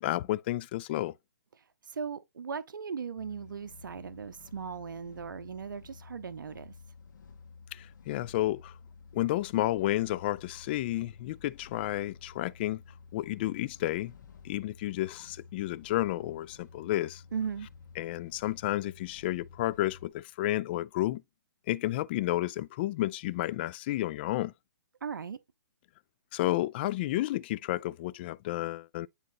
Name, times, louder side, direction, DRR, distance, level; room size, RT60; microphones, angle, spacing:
voice 1, 0.0-1.1 7.7-8.7 9.1-12.8 13.1-14.1 14.4-17.2 18.0-21.2 21.7-24.5 26.3-29.1, left 15 dB, 30° left, 0.4 m, -31 dB
voice 2, 1.9-6.7 17.3-17.7 25.0-25.4, right 6 dB, 85° right, 0.7 m, -38 dB
sound 1, 3.2-20.1, left 5 dB, 70° left, 2.2 m, -52 dB
9.7 x 4.1 x 2.6 m
hypercardioid pair, 150°, 10 cm